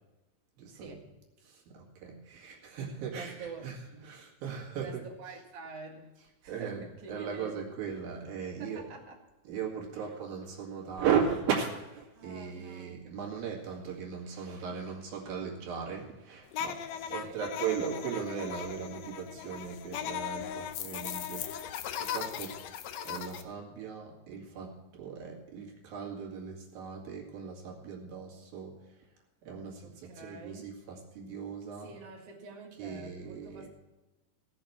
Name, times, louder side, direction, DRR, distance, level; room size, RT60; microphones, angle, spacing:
voice 1, 0.7-1.1 3.1-4.3 4.8-6.1 6.4-7.6 8.6-9.2 10.0-10.1 12.1-12.9 16.9-17.5 20.4-20.7 29.8-30.7 31.8-33.7, right 4 dB, 50° right, -1 dB, 2.7 m, -47 dB
voice 2, 1.4-3.8 4.0-5.0 6.5-6.8 7.1-8.8 9.5-22.6 23.1-28.8 29.4-31.9 32.8-33.7, right 7 dB, 80° right, -2 dB, 3.9 m, -37 dB
sound 1, 16.5-23.4, left 9 dB, 90° left, 1.5 m, -38 dB
17.5 x 6.9 x 5.9 m, 1.1 s
omnidirectional pair, 4.1 m